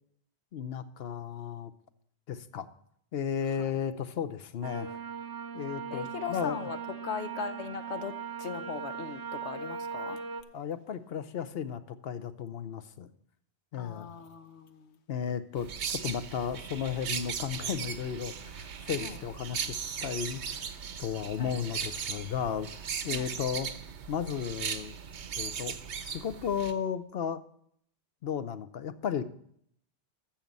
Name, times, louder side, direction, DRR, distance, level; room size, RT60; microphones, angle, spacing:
voice 1, 0.5-1.7 2.3-2.7 3.1-5.0 5.5-6.7 10.5-13.1 13.7-14.1 15.1-23.7 24.1-25.0 25.4-27.4 28.2-29.4, left 8 dB, 65° left, 0.9 m, -34 dB
sound 1, 4.6-10.4, right 6 dB, 25° right, 0.7 m, -39 dB
voice 2, 5.9-10.2 13.7-15.0 19.0-19.2 21.4-21.6 23.1-23.3, left 6 dB, 90° left, 1.1 m, -39 dB
sound 2, 15.6-26.7, right 7 dB, 85° right, 1.1 m, -38 dB
13.5 x 7.2 x 5.3 m
omnidirectional pair, 1.1 m